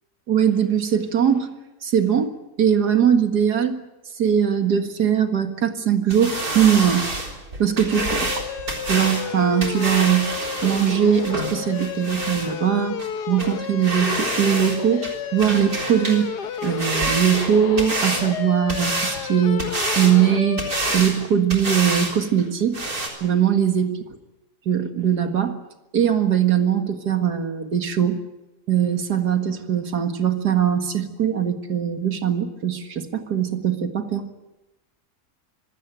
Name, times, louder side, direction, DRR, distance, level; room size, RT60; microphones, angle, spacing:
voice 1, 0.3-1.5 1.8-3.8 4.2-7.1 7.6-8.2 8.8-10.3 10.6-13.0 13.3-15.0 15.3-16.3 16.6-19.7 20.0-20.6 20.9-22.8 23.2-24.0 24.7-25.6 25.9-28.2 28.7-34.2, right 8 dB, 85° right, 7 dB, 2.3 m, -21 dB
sound 1, 6.1-12.5 13.0-13.1 13.4-13.5 13.8-14.8 15.0-16.2 16.5-18.2 18.7-19.2 19.6-20.1 20.6-21.2 21.5-22.1 22.4-22.5 22.7-23.1, right 2 dB, 65° right, 4.5 m, -27 dB
sound 2, 7.9-21.0, left 8 dB, 85° left, 1.6 m, -31 dB
25.0 x 16.0 x 9.0 m, 1.0 s
omnidirectional pair, 1.7 m